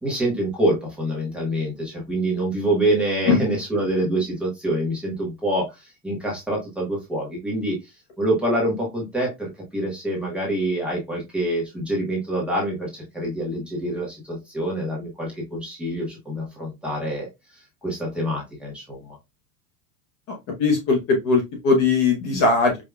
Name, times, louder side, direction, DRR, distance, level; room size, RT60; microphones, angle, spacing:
voice 1, 0.0-17.3 17.8-19.2, right 1 dB, ahead, -4 dB, 1.1 m, -26 dB
voice 2, 20.3-22.8, left 4 dB, 35° left, 1 dB, 0.9 m, -20 dB
4.9 x 2.7 x 2.2 m, 0.21 s
supercardioid pair, 170°, 47 cm